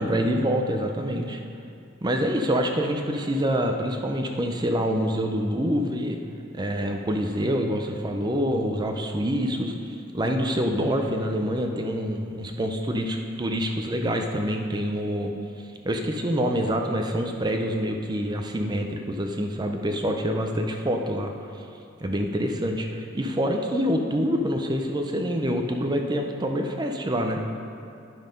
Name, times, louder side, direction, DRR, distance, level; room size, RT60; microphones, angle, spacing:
voice 1, 0.0-1.4 2.0-6.2 6.5-15.3 15.8-21.3 22.0-27.4, equal, 20° right, 4 dB, 0.5 m, -26 dB
10.5 x 5.6 x 5.2 m, 2.5 s
head